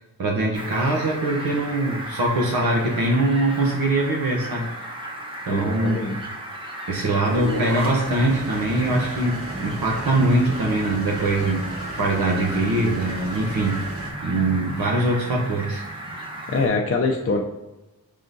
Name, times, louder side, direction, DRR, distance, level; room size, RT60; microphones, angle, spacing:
voice 1, 0.2-4.7 5.4-6.0 6.9-13.8 14.2-15.8, right 2 dB, 75° right, -2 dB, 0.9 m, -22 dB
Fowl, 0.5-16.7, right 1 dB, 15° right, 1.0 m, -35 dB
voice 2, 5.5-6.2 16.5-17.4, left 3 dB, 40° left, 1 dB, 0.5 m, -23 dB
sound 1, 7.2-14.1, right 1 dB, 40° right, 1.1 m, -34 dB
4.9 x 3.6 x 2.6 m, 1.0 s
cardioid pair, 65°, 37 cm